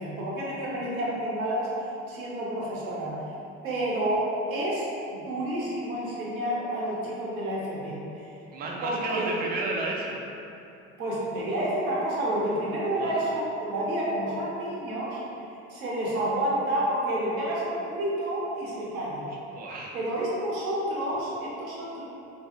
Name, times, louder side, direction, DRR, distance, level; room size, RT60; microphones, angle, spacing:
voice 1, 0.0-1.7 2.1-3.2 3.6-8.3 8.8-9.4 11.0-15.2 15.7-19.3 19.9-22.0, right 1 dB, 85° right, -6 dB, 0.7 m, -29 dB
voice 2, 8.5-10.2 13.0-13.2 19.5-20.0, right 3 dB, 25° right, -2 dB, 0.4 m, -32 dB
2.6 x 2.6 x 2.5 m, 2.8 s
hypercardioid pair, 65°, 41 cm